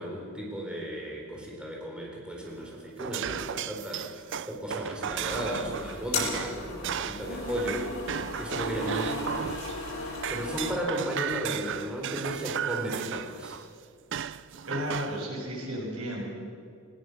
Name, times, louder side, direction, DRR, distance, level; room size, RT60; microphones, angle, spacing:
voice 1, 0.0-7.9 8.4-9.6 10.0-13.6, equal, 5° right, -2 dB, 4.1 m, -35 dB
sound 1, 2.5-9.9 10.2-13.7 14.1-15.2, right 8 dB, 60° right, 0.5 m, -35 dB
sound 2, 5.0-10.7, left 2 dB, 90° left, 7.9 m, -36 dB
voice 2, 14.7-16.2, equal, 85° right, -2 dB, 7.1 m, -33 dB
21.0 x 20.5 x 6.5 m, 2.3 s
head